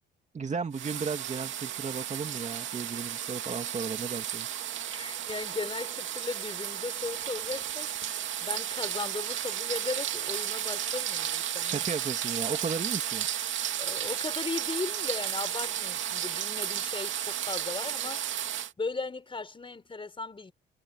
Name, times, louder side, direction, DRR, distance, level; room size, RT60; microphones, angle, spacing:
voice 1, 0.3-4.5 11.6-13.3, right 5 dB, 35° right, 2.5 m, -35 dB
sound 1, 0.7-18.7, right 10 dB, 75° right, 2.5 m, -33 dB
voice 2, 4.9-8.1 8.4-11.8 13.8-18.2 18.5-20.5, left 3 dB, 25° left, 4.9 m, -37 dB
cardioid pair, 90°, 20 cm